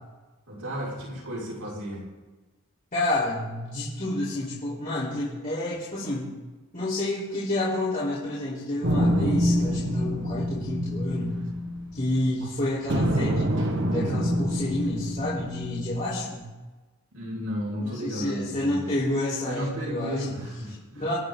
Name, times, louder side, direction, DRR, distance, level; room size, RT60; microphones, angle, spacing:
voice 1, 0.5-2.1 17.1-18.9 19.4-21.1, equal, 80° right, -8 dB, 5.8 m, -33 dB
voice 2, 2.9-6.3 6.7-11.3 11.9-13.5 13.9-16.4 17.8-20.4 21.0-21.2, left 1 dB, 35° left, -11 dB, 4.3 m, -29 dB
sound 1, 8.8-12.4 12.9-16.2, equal, 55° right, 1.6 m, -26 dB
27.0 x 9.7 x 4.0 m, 1.2 s
head